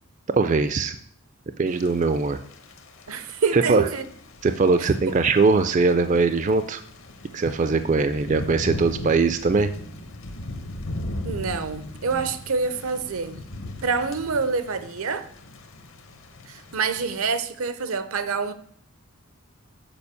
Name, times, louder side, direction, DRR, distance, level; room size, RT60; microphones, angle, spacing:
voice 1, 0.3-1.0 1.6-2.4 3.5-3.9 4.4-6.8 7.3-9.7, right 4 dB, 35° right, 0.4 m, -21 dB
Thunder / Rain, 1.7-17.3, left 1 dB, 65° left, 1.0 m, -39 dB
voice 2, 3.1-4.1 11.2-13.4 13.8-15.3 16.5-18.5, right 5 dB, 80° right, 0.7 m, -26 dB
7.0 x 5.1 x 6.8 m
head